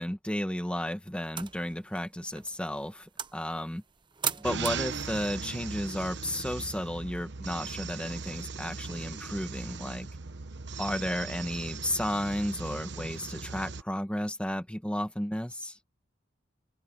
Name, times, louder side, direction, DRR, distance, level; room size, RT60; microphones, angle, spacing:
voice 1, 0.0-3.8 4.4-10.1 10.8-15.8, left 1 dB, 5° left, 1.4 m, -33 dB
sound 1, 1.3-6.8, right 7 dB, 25° right, 1.0 m, -41 dB
sound 2, 4.4-13.8, right 4 dB, 65° right, 1.0 m, -39 dB
head